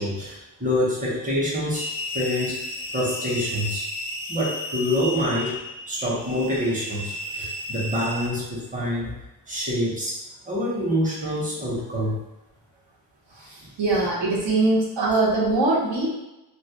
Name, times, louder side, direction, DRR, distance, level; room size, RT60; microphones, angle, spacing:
voice 1, 0.0-1.9 2.1-2.7 2.9-3.8 4.3-5.6 5.9-9.2 9.5-10.2 10.5-12.2 13.3-13.7, left 1 dB, 20° right, -5 dB, 0.8 m, -26 dB
sound 1, 1.7-8.3, left 1 dB, 35° left, 0.4 m, -33 dB
voice 2, 13.8-16.1, right 2 dB, 75° right, -4 dB, 0.8 m, -21 dB
2.3 x 2.1 x 2.8 m, 0.96 s
wide cardioid pair, 115°, 44 cm